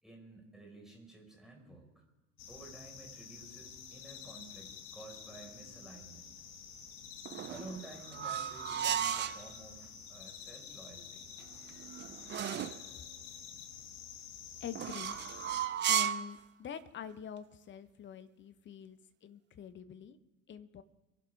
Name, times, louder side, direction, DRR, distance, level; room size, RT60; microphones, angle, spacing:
voice 1, 0.0-2.0 2.5-6.3 7.5-11.3, right 2 dB, ahead, -1 dB, 4.9 m, -52 dB
sound 1, 2.4-15.7, left 7 dB, 50° left, 1.7 m, -49 dB
sound 2, 7.3-9.4 11.4-12.8 14.7-16.3, right 10 dB, 25° right, 0.7 m, -34 dB
voice 2, 14.6-15.2 15.9-20.2 20.5-20.8, left 8 dB, 30° left, 12 dB, 1.1 m, -46 dB
26.5 x 11.5 x 3.5 m, 1.0 s
figure-of-eight pair, 70°, 41 cm